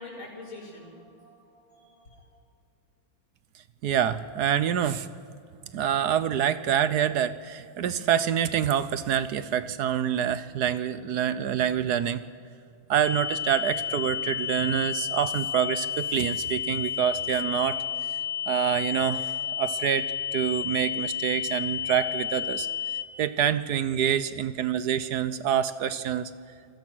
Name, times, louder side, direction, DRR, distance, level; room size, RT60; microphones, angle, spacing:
voice 1, 0.0-2.3, left 2 dB, 75° left, -2 dB, 6.1 m, -45 dB
voice 2, 3.8-5.1 5.7-12.2 12.9-17.8 18.5-22.7 23.2-26.3, right 9 dB, 65° right, 14 dB, 1.1 m, -26 dB
sound 1, 13.0-23.0, left 8 dB, 45° left, 2.0 m, -31 dB
27.5 x 19.0 x 6.2 m, 2.5 s
omnidirectional pair, 2.2 m